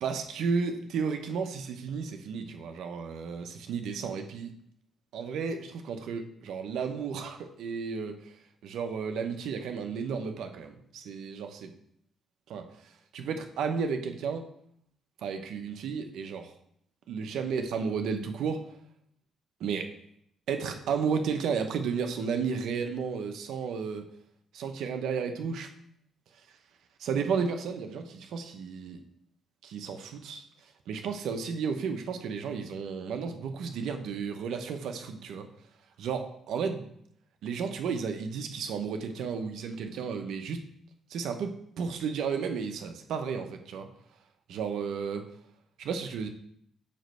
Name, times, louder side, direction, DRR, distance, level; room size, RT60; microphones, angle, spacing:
voice 1, 0.0-4.5 5.1-8.3 8.6-11.7 12.5-12.7 13.1-14.4 15.2-16.5 17.1-18.6 19.6-19.9 20.5-24.1 24.5-25.7 27.0-29.0 29.6-30.4 30.9-35.5 36.0-36.9 37.4-40.6 41.1-43.9 44.5-45.3 45.8-46.3, right 6 dB, 80° right, 6 dB, 0.9 m, -33 dB
8.6 x 3.1 x 6.4 m, 0.70 s
cardioid pair, 90°, 0 cm